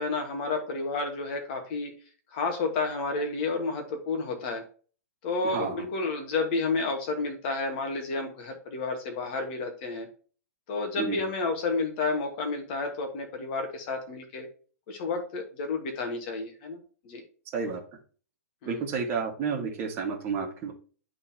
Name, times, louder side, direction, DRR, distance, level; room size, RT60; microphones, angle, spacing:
voice 1, 0.0-1.9 2.3-4.6 5.2-10.1 10.7-14.5 14.9-16.8 17.0-17.2 18.6-18.8, left 3 dB, 35° left, 4 dB, 1.5 m, -31 dB
voice 2, 5.5-5.9 11.0-11.2 17.5-17.8 18.6-20.7, right 5 dB, 25° right, -1 dB, 1.6 m, -30 dB
11.0 x 3.7 x 2.8 m, 0.39 s
hypercardioid pair, 165°, 9 cm